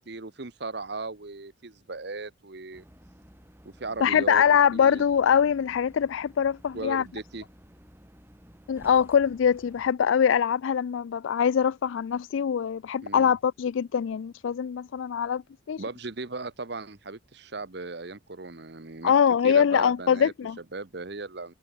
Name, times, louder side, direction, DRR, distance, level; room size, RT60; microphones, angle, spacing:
voice 1, 0.1-2.8 3.6-4.4 4.7-5.1 6.7-7.4 13.0-13.4 15.8-19.1 19.4-20.3 20.7-21.6, right 3 dB, 55° right, 1.1 m, -37 dB
sound 1, 2.7-9.9, equal, 10° right, 3.9 m, -53 dB
voice 2, 4.0-7.0 8.7-15.4 15.7-15.8 19.0-20.6, left 7 dB, 70° left, 0.3 m, -23 dB
head